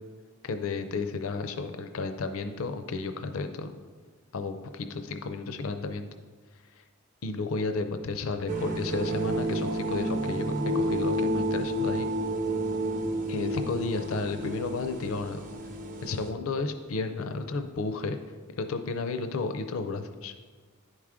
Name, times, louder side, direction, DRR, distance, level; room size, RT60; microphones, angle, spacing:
voice 1, 0.4-3.8 4.3-6.1 7.2-12.1 13.3-15.4 16.0-18.2 18.6-20.3, left 3 dB, 70° left, 8 dB, 0.5 m, -32 dB
sound 1, 8.5-16.3, right 1 dB, 40° right, 0.7 m, -30 dB
10.0 x 4.8 x 3.6 m, 1.4 s
head